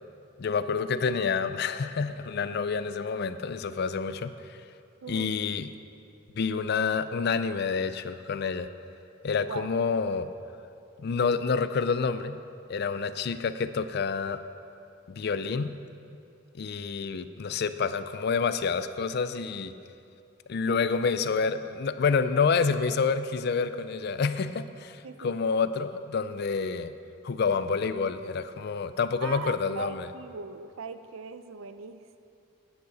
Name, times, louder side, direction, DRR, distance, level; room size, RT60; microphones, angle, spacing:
voice 1, 0.4-4.6 5.1-5.7 6.3-8.7 9.2-10.3 11.0-12.4 12.7-14.4 15.1-15.7 16.5-19.7 20.5-26.9 27.2-30.1, left 5 dB, 50° left, 12 dB, 0.4 m, -28 dB
voice 2, 5.0-5.4 9.5-9.7 25.0-25.4 29.2-32.2, right 4 dB, 80° right, 11 dB, 0.5 m, -40 dB
11.0 x 9.6 x 4.0 m, 2.6 s
head